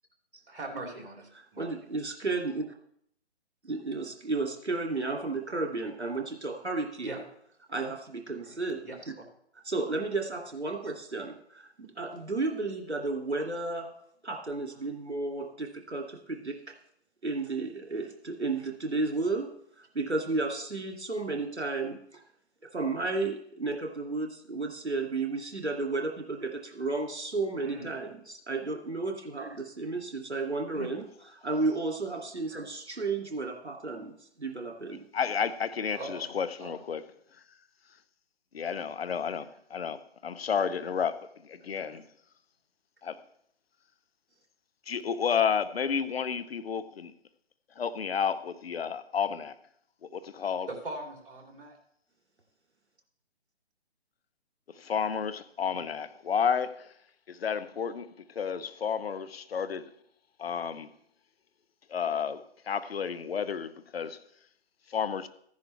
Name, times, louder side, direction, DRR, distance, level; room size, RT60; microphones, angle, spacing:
voice 1, 0.5-1.8 7.0-7.2 8.4-8.6 8.8-9.0 27.6-27.9 30.7-30.9 35.9-36.3 36.6-36.7 38.7-39.0 39.4-39.5 41.6-42.0 50.7-51.8, right 2 dB, 55° right, 3.1 m, -41 dB
voice 2, 1.6-2.6 3.6-7.1 7.7-8.9 9.7-13.9 14.2-16.7 17.2-19.5 19.8-22.2 22.7-31.0 31.4-35.0, right 3 dB, 80° right, 2.7 m, -33 dB
voice 3, 35.1-37.0 38.5-41.2 41.4-42.0 43.0-43.2 44.9-47.1 47.8-49.5 50.0-50.7 54.7-56.9 57.3-59.9 60.4-60.9 61.9-62.4 62.7-64.2 64.9-65.3, left 7 dB, 65° left, 0.8 m, -31 dB
14.5 x 10.5 x 3.3 m
figure-of-eight pair, 135°, 33 cm